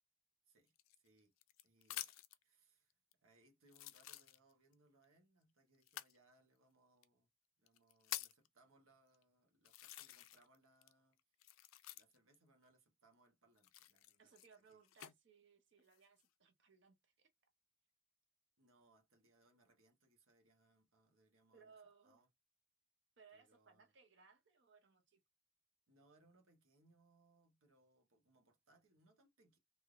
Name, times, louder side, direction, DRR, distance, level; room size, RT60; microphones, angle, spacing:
voice 1, 0.5-1.3 1.6-7.3 7.6-11.5 11.9-14.3 14.7-14.8 18.6-21.7 22.0-22.3 23.3-23.9 25.9-29.6, right 2 dB, 85° right, 1.1 m, -73 dB
sound 1, 0.8-2.4 3.1-3.2 3.7-4.7 5.8-6.2 7.0-7.1 7.7-8.5 9.1-9.2 9.7-10.6 10.8-12.4 13.6-15.1 15.8-16.3, left 14 dB, 85° left, 0.4 m, -50 dB
voice 2, 14.2-17.3 21.5-22.2 23.2-25.2, right 5 dB, 60° right, 0.6 m, -66 dB
3.2 x 2.6 x 2.4 m
head